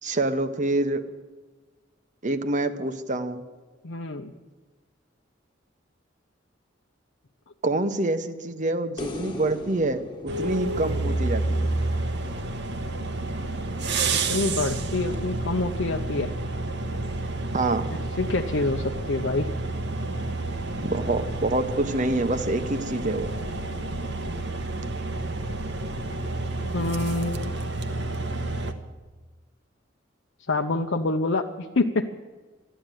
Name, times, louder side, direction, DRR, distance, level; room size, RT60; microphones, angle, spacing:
voice 1, 0.0-1.0 2.2-3.4 7.6-10.0 10.4-11.7 17.5-17.9 20.6-23.3, right 2 dB, 40° right, 10 dB, 1.0 m, -26 dB
voice 2, 3.8-4.3 14.1-16.3 18.2-19.5 26.7-27.5 30.5-32.1, left 2 dB, 70° left, 2 dB, 0.8 m, -26 dB
sound 1, 9.0-12.3 15.1-15.2, left 2 dB, 25° left, 1.5 m, -39 dB
sound 2, 10.3-28.7, right 2 dB, 60° right, 1.2 m, -30 dB
13.0 x 11.0 x 9.1 m, 1.3 s
head